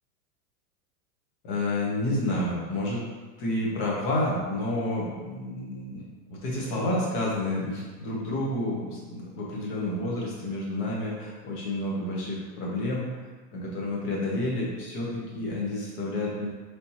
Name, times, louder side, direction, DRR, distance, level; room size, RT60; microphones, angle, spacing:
voice 1, 1.4-3.0 3.4-6.0 6.3-13.1 13.5-16.5, left 1 dB, 30° left, -5 dB, 0.8 m, -30 dB
3.4 x 2.8 x 2.8 m, 1.4 s
supercardioid pair, 160°, 45 cm